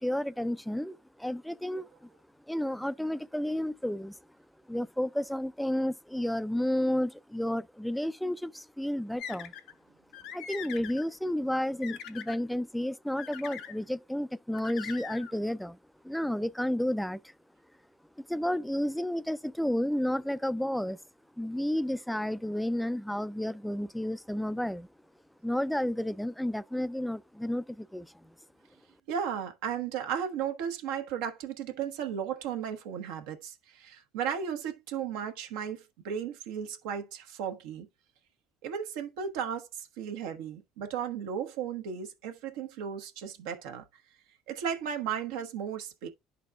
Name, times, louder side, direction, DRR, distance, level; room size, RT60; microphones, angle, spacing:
voice 1, 0.0-2.1 2.5-4.2 4.7-9.5 10.3-15.8 16.0-17.3 18.2-21.0 21.4-24.9 25.4-28.1, left 1 dB, 5° left, 0.4 m, -31 dB
sound 1, 9.2-9.7 10.1-11.0 11.5-12.4 13.2-13.8 14.5-15.3, left 8 dB, 70° left, 0.9 m, -42 dB
voice 2, 29.1-37.9 38.6-43.8 44.5-46.1, right 8 dB, 80° right, 1.1 m, -35 dB
12.0 x 4.1 x 2.2 m
hypercardioid pair, 70°, 0 cm